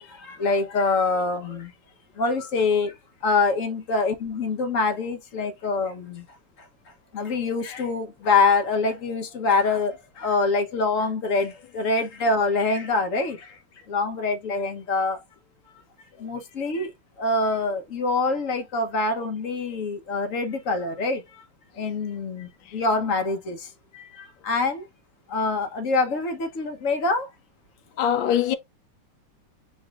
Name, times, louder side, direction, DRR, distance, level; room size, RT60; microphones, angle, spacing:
voice 1, 0.0-1.7 2.2-2.9 3.2-6.3 7.1-13.6 13.9-15.2 16.2-16.9 17.2-21.4 21.8-23.7 23.9-24.9 25.3-27.3, left 3 dB, 50° left, 1.0 m, -25 dB
voice 2, 28.0-28.6, left 9 dB, 70° left, 1.2 m, -23 dB
7.0 x 2.6 x 2.3 m
omnidirectional pair, 2.3 m